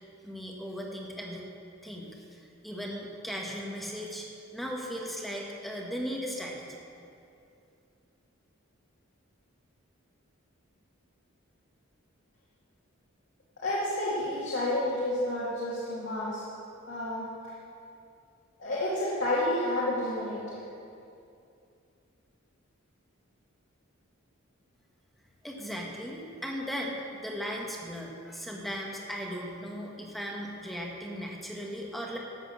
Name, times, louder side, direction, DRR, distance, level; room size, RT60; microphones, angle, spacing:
voice 1, 0.2-1.5 1.8-4.3 4.5-6.7 25.4-32.2, equal, ahead, -1 dB, 1.4 m, -37 dB
voice 2, 13.6-16.4 16.9-17.2 18.6-20.6, left 1 dB, 60° left, -8 dB, 2.5 m, -30 dB
14.0 x 8.0 x 6.3 m, 2.6 s
head